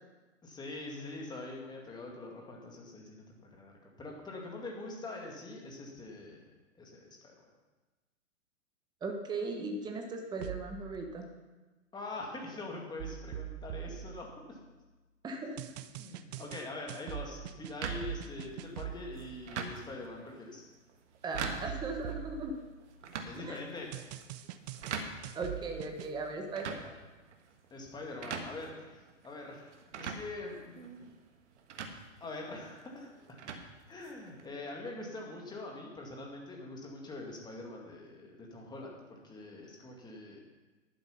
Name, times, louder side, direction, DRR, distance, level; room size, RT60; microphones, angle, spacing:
voice 1, 0.4-3.2 3.5-6.4 6.7-7.3 11.9-14.6 15.9-20.6 23.2-24.0 27.7-30.9 32.2-33.4 33.9-40.4, left 2 dB, 10° left, 0 dB, 2.2 m, -44 dB
voice 2, 9.0-11.3 15.2-15.6 21.2-22.5 23.4-23.6 25.3-26.9, right 3 dB, 10° right, 3 dB, 1.1 m, -38 dB
sound 1, 10.4-11.0 13.0-14.9 15.6-19.3 21.3-23.2 23.9-26.2, right 11 dB, 35° right, 0.6 m, -43 dB
sound 2, 17.8-34.5, right 5 dB, 60° right, 1.7 m, -45 dB
11.0 x 9.0 x 5.8 m, 1.2 s
hypercardioid pair, 125°, 39 cm